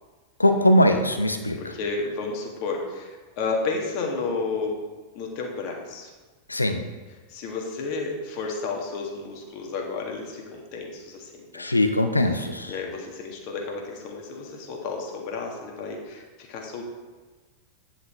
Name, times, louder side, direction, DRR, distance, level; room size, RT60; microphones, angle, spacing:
voice 1, 0.4-1.6 6.5-6.9 11.5-12.7, left 1 dB, 80° left, 6 dB, 0.6 m, -21 dB
voice 2, 1.6-4.8 5.2-6.1 7.3-11.7 12.3-16.9, left 4 dB, 45° left, 1 dB, 1.7 m, -32 dB
9.8 x 5.9 x 4.4 m, 1.3 s
figure-of-eight pair, 90°, 0 cm